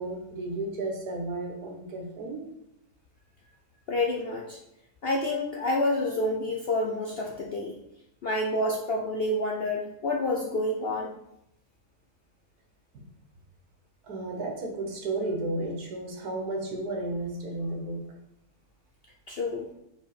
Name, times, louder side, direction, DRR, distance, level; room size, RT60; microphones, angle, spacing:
voice 1, 0.0-2.4 12.9-13.1 14.0-18.0, right 2 dB, 70° right, 1 dB, 1.8 m, -33 dB
voice 2, 3.9-4.6 5.0-7.8 8.2-11.2 19.3-19.7, left 1 dB, 55° left, 0 dB, 0.7 m, -28 dB
4.9 x 4.5 x 5.0 m, 0.79 s
omnidirectional pair, 1.7 m